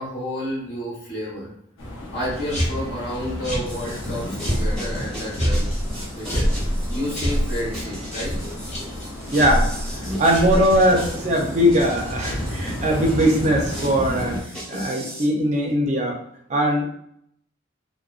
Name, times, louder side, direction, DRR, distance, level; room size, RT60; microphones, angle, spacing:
voice 1, 0.0-1.5 2.1-5.7 6.1-6.5 6.9-8.3 9.0-9.1, equal, 60° left, -5 dB, 1.0 m, -30 dB
sound 1, 1.8-14.4, left 1 dB, 90° left, 0.6 m, -34 dB
sound 2, 2.2-11.1, equal, 35° left, 0.7 m, -27 dB
sound 3, 3.7-15.3, equal, 5° left, 0.8 m, -36 dB
voice 2, 9.3-9.7 10.2-14.4 14.7-16.2 16.5-16.8, equal, 35° right, 0 dB, 0.5 m, -20 dB
2.5 x 2.1 x 2.4 m, 0.69 s
head